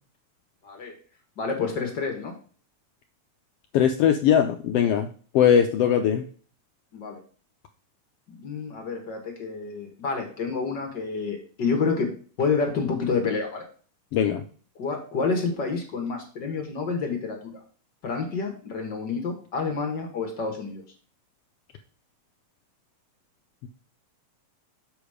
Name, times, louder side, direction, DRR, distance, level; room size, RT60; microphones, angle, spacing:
voice 1, 1.4-2.3 6.9-7.2 8.3-12.1 12.4-13.6 14.8-17.5 18.0-20.8, left 4 dB, 45° left, 3 dB, 1.6 m, -28 dB
voice 2, 3.7-5.1 5.3-6.2 14.1-14.4 23.6-23.7, left 9 dB, 75° left, 5 dB, 1.4 m, -20 dB
7.2 x 5.0 x 5.0 m, 0.42 s
omnidirectional pair, 3.3 m